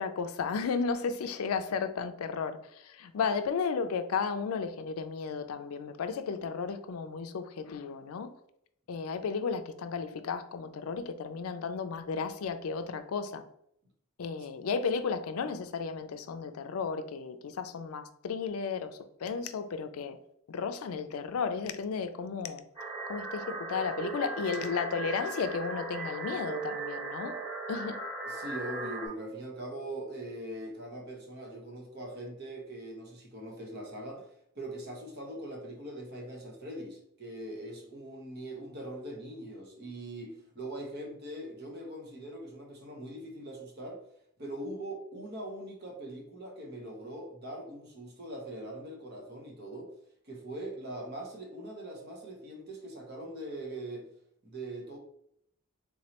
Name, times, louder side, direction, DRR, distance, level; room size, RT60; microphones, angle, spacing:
voice 1, 0.0-8.3 8.9-13.4 14.2-20.2 20.5-22.6 23.1-27.3 27.7-28.0, left 5 dB, 90° left, 0.4 m, -34 dB
sound 1, 22.8-29.1, right 3 dB, 15° right, 1.2 m, -38 dB
voice 2, 28.2-44.0 44.4-49.9 50.2-54.1 54.4-55.0, right 1 dB, 50° right, 0.9 m, -41 dB
3.7 x 3.0 x 2.8 m
head